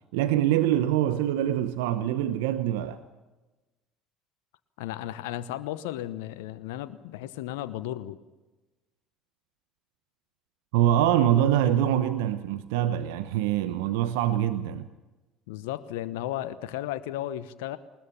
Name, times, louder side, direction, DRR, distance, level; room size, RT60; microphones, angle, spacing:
voice 1, 0.1-3.0 10.7-14.9, right 11 dB, 75° right, 0.9 m, -24 dB
voice 2, 4.8-8.2 15.5-17.8, left 13 dB, 75° left, 1.0 m, -34 dB
21.0 x 20.5 x 7.2 m
hypercardioid pair, 65°, 0 cm